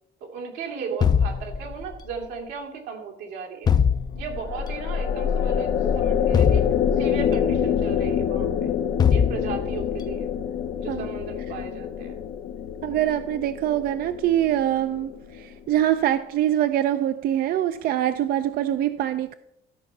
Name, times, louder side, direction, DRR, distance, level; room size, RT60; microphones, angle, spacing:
voice 1, 0.2-3.8 4.2-6.6 7.0-8.7 9.1-10.3 10.8-12.2, right 5 dB, 90° right, 2.2 m, -36 dB
sound 1, 1.0-2.1 3.7-4.6 6.3-7.4 9.0-10.0, left 7 dB, 25° left, 0.4 m, -22 dB
sound 2, 4.1-15.6, left 8 dB, 75° left, 0.8 m, -26 dB
voice 2, 12.8-19.4, right 12 dB, 60° right, 0.4 m, -24 dB
13.0 x 4.4 x 5.9 m
cardioid pair, 110°, 17 cm